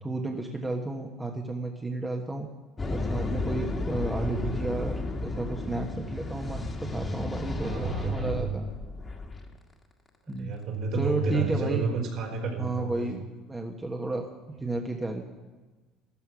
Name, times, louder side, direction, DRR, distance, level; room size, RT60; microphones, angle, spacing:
voice 1, 0.0-2.5 2.9-8.7 10.3-10.5 10.9-11.9 12.6-13.2 13.5-14.3 14.6-15.2, right 2 dB, 10° right, 1 dB, 1.3 m, -32 dB
sound 1, 2.8-9.5, left 2 dB, 20° left, 1.9 m, -33 dB
voice 2, 7.6-8.5 10.3-13.1, right 4 dB, 60° right, 2 dB, 4.1 m, -31 dB
14.0 x 13.0 x 6.2 m, 1.2 s
cardioid pair, 130°, 0 cm